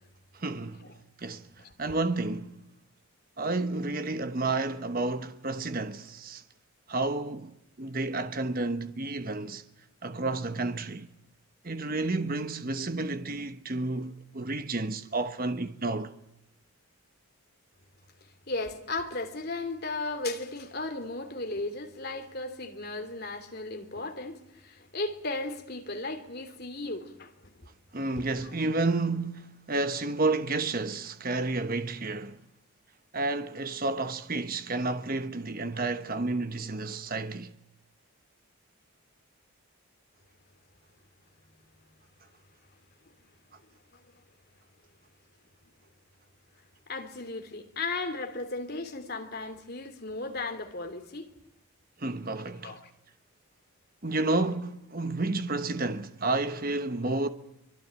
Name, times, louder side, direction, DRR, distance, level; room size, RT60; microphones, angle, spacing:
voice 1, 0.3-0.9 1.2-1.5 1.8-2.6 3.4-6.4 6.9-9.6 10.0-11.1 11.6-16.1 27.9-32.4 33.1-37.5 52.0-52.8 54.0-57.3, right 2 dB, 40° right, 1.1 m, -31 dB
voice 2, 1.6-2.0 18.5-27.7 28.2-28.5 46.9-51.3 52.4-52.8, left 2 dB, 45° left, 2.8 m, -36 dB
24.5 x 23.0 x 8.8 m
head